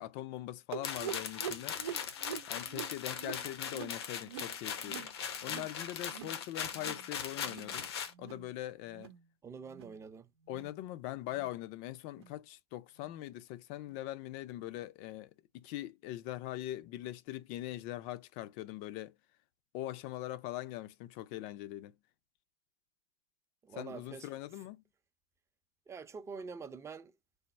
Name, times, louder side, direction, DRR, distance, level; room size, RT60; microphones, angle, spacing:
voice 1, 0.0-1.8 2.5-5.1 5.4-7.9 8.2-9.1 10.5-19.2 19.7-21.9 23.7-24.8, left 14 dB, 55° left, 0.5 m, -42 dB
sound 1, 0.7-5.8 6.0-6.4 6.7-7.1 7.4-7.8 8.1-8.5 8.9-9.2 9.7-10.0 10.5-10.7 11.3-11.5 12.1-12.3 13.0-13.1 13.9-14.0, right 9 dB, 85° right, 0.7 m, -45 dB
sound 2, 0.8-8.1, left 7 dB, 80° left, 0.8 m, -40 dB
voice 2, 9.4-10.3 23.6-24.3 25.9-27.1, right 5 dB, 20° right, 0.5 m, -45 dB
3.4 x 2.0 x 4.0 m
hypercardioid pair, 105°, 13 cm